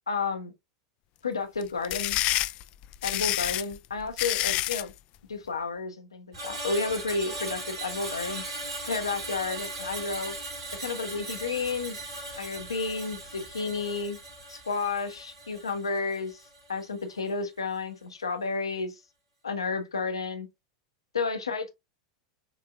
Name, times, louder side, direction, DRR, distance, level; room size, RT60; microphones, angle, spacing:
voice 1, 0.1-0.5 1.2-2.2 3.0-4.9 5.3-8.4 8.9-10.3 10.8-14.2 14.5-16.4 16.7-19.0 19.4-20.5 21.1-21.7, left 4 dB, 80° left, 0.9 m, -31 dB
sound 1, 1.6-4.9, left 16 dB, 45° left, 0.4 m, -28 dB
Screech, 6.3-16.7 17.0-17.3, right 2 dB, 75° right, 2.6 m, -38 dB
5.9 x 2.7 x 2.2 m
figure-of-eight pair, 85°, 3 cm